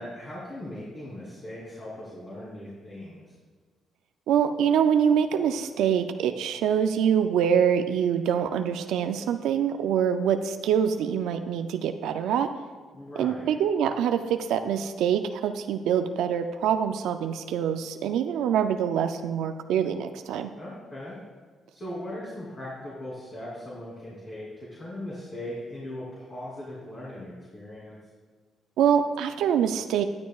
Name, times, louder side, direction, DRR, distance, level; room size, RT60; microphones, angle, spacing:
voice 1, 0.0-3.2 12.9-13.6 20.6-21.2 21.7-28.0, left 1 dB, 35° left, -7 dB, 3.0 m, -39 dB
voice 2, 4.3-12.5 13.2-20.5 28.8-30.0, right 8 dB, 85° right, 8 dB, 0.4 m, -25 dB
11.5 x 10.5 x 2.4 m, 1.5 s
cardioid pair, 90°, 0 cm